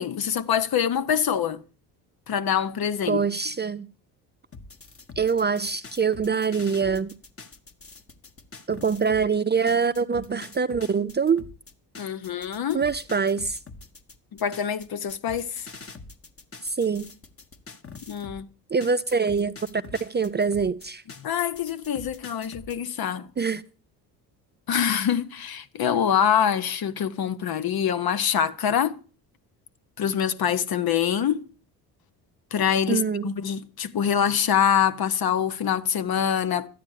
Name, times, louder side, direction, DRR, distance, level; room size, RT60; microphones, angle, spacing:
voice 1, 0.0-1.6 2.3-3.2 12.0-12.8 14.4-15.7 18.1-18.5 21.2-23.3 24.7-29.0 30.0-31.4 32.5-36.7, left 8 dB, 45° left, 1.1 m, -25 dB
voice 2, 3.1-3.9 5.2-7.1 8.7-11.4 12.7-13.6 16.6-17.1 18.7-21.0 23.4-23.6 32.9-33.3, right 5 dB, 20° right, 0.6 m, -24 dB
sound 1, 4.5-9.3 9.7-18.4 18.8-22.8, left 4 dB, 25° left, 1.5 m, -45 dB
12.5 x 9.3 x 6.5 m
hypercardioid pair, 55°, 50 cm